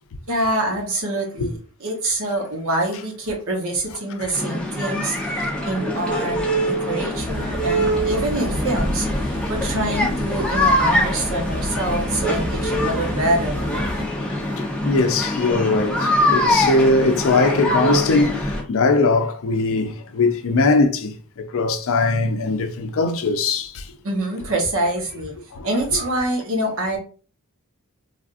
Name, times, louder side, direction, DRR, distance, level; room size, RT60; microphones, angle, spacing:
voice 1, 0.3-14.2 14.5-14.6 24.0-25.3 25.6-27.0, right 1 dB, 65° right, 1.0 m, -26 dB
sound 1, 4.3-18.6, equal, 5° left, 0.6 m, -23 dB
sound 2, 7.1-14.1, equal, 25° right, 0.8 m, -30 dB
voice 2, 14.1-23.9 25.5-25.7, left 3 dB, 65° left, 0.5 m, -21 dB
3.4 x 2.4 x 2.5 m
head